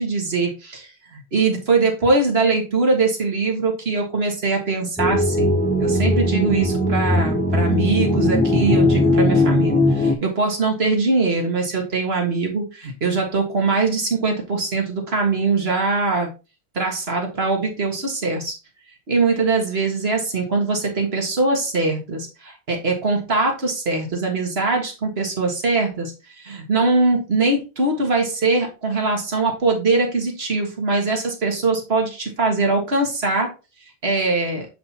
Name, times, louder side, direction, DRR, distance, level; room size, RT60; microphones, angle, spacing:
voice 1, 0.0-16.3 16.8-18.5 19.1-33.5 34.0-34.7, right 3 dB, 80° right, 1 dB, 1.9 m, -22 dB
sound 1, 5.0-10.2, left 1 dB, 10° left, 0.6 m, -19 dB
7.6 x 5.2 x 2.9 m, 0.30 s
omnidirectional pair, 1.0 m